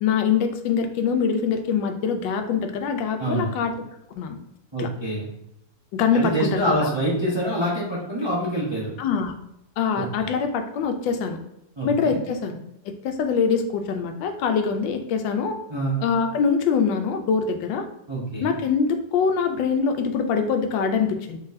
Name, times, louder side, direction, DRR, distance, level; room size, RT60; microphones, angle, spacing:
voice 1, 0.0-3.7 4.2-4.4 4.8-4.9 5.9-6.9 9.0-9.3 9.8-11.4 11.8-12.6 12.8-15.6 16.0-17.9 18.4-21.4, left 6 dB, 90° left, 6 dB, 1.3 m, -24 dB
voice 2, 3.2-3.5 4.7-5.3 6.1-8.9 10.0-10.3 11.8-12.2 15.7-16.0 18.1-18.5, right 1 dB, 35° right, -5 dB, 0.4 m, -26 dB
3.9 x 3.9 x 2.6 m, 0.83 s
omnidirectional pair, 2.0 m